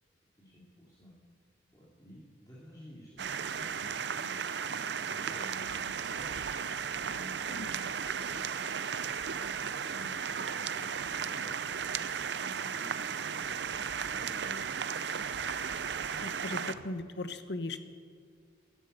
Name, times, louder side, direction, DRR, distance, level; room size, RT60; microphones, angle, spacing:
voice 1, 0.4-1.1 1.7-4.3 4.7-8.0 8.3-8.6 9.1-15.9, equal, 20° left, -7 dB, 2.6 m, -53 dB
sound 1, 3.2-16.7, right 7 dB, 65° right, 0.6 m, -35 dB
voice 2, 16.2-17.8, left 2 dB, 65° left, 10 dB, 1.0 m, -38 dB
13.5 x 11.0 x 9.0 m, 2.1 s
head